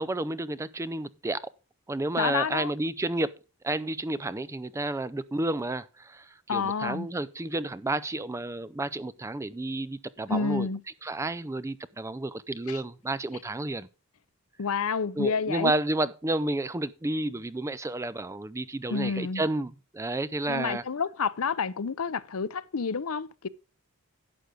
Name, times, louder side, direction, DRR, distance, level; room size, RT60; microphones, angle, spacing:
voice 1, 0.0-1.4 1.9-3.3 3.6-10.7 11.0-13.9 15.2-20.8, right 2 dB, 15° right, 0.4 m, -31 dB
voice 2, 2.2-2.7 6.5-7.1 10.3-10.8 12.7-12.8 14.6-15.7 18.9-19.5 20.5-23.5, left 5 dB, 70° left, 0.6 m, -29 dB
11.5 x 8.1 x 3.8 m
head